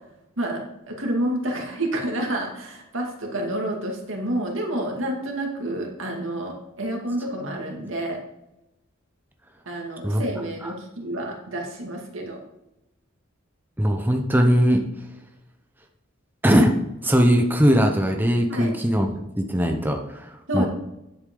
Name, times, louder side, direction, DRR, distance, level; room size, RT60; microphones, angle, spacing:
voice 1, 0.4-8.2 9.7-12.4 18.5-18.7 20.5-20.7, right 1 dB, 75° right, 1 dB, 2.3 m, -29 dB
voice 2, 13.8-14.8 16.4-16.7 17.0-20.0 20.5-20.7, equal, 10° right, 3 dB, 0.8 m, -19 dB
10.0 x 8.0 x 3.8 m, 0.90 s
head